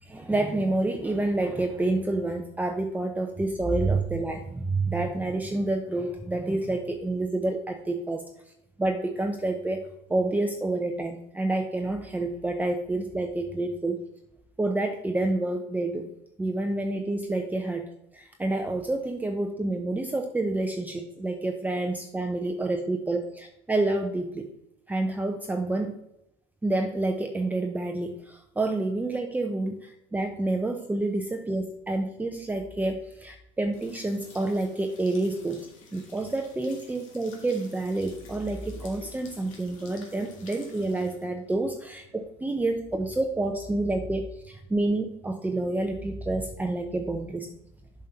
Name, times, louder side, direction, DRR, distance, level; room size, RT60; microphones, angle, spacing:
voice 1, 0.0-8.2 8.8-9.8 10.1-14.0 14.6-16.1 16.4-24.5 24.9-26.0 26.6-47.5, right 2 dB, 10° right, 3 dB, 0.7 m, -28 dB
sound 1, 33.7-43.4, left 4 dB, 80° left, 1.8 m, -51 dB
7.5 x 4.3 x 5.2 m, 0.82 s
hypercardioid pair, 80°, 17 cm